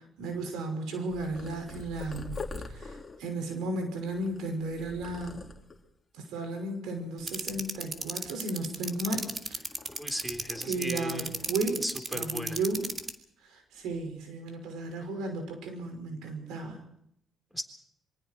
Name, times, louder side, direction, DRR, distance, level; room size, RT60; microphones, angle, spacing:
voice 1, 0.2-2.4 2.7-5.4 6.1-9.6 10.6-11.8 12.1-12.9 13.5-16.8, right 2 dB, 90° right, 5 dB, 5.8 m, -34 dB
Purr, 1.1-5.9 6.5-7.0 7.2-8.4 8.8-10.9 11.2-12.5 12.8-13.1 13.7-14.1, left 3 dB, 30° left, 2.9 m, -45 dB
sound 1, 7.3-13.1, right 4 dB, 35° right, 2.4 m, -32 dB
voice 2, 9.9-11.3 11.8-12.6 17.5-17.6, equal, 5° right, 6 dB, 3.6 m, -36 dB
26.5 x 23.5 x 4.6 m, 0.74 s
cardioid pair, 90°, 0 cm